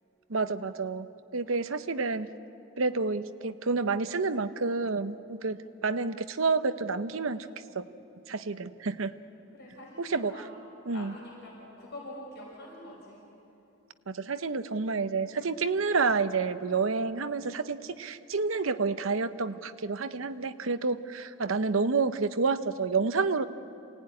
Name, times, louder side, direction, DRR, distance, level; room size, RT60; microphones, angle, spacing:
voice 1, 0.3-2.3 2.8-5.6 5.8-7.5 7.7-7.8 8.3-9.1 10.0-10.3 10.9-11.1 14.1-23.5, right 4 dB, 70° right, 11 dB, 0.9 m, -29 dB
voice 2, 9.5-10.5 10.9-13.2, left 1 dB, 55° left, -4 dB, 6.5 m, -45 dB
27.0 x 18.0 x 9.7 m, 2.8 s
head